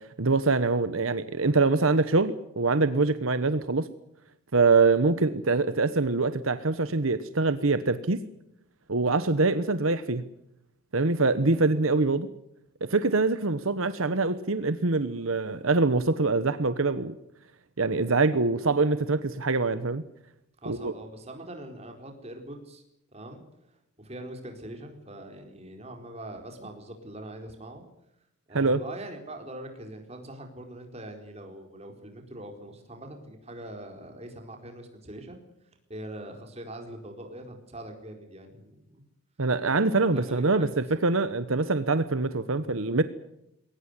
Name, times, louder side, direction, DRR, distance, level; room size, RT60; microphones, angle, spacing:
voice 1, 0.2-3.9 4.5-8.2 8.9-10.2 10.9-12.3 12.8-17.1 17.8-20.0 20.7-20.9 28.5-28.8 39.4-40.7 41.0-43.0, right 3 dB, 80° right, 13 dB, 1.1 m, -24 dB
voice 2, 20.6-22.8 23.1-23.4 24.0-27.8 28.5-35.4 35.9-39.0 40.1-40.6 42.6-42.7, right 1 dB, 30° right, 4 dB, 4.4 m, -42 dB
21.5 x 18.5 x 9.8 m, 0.80 s
head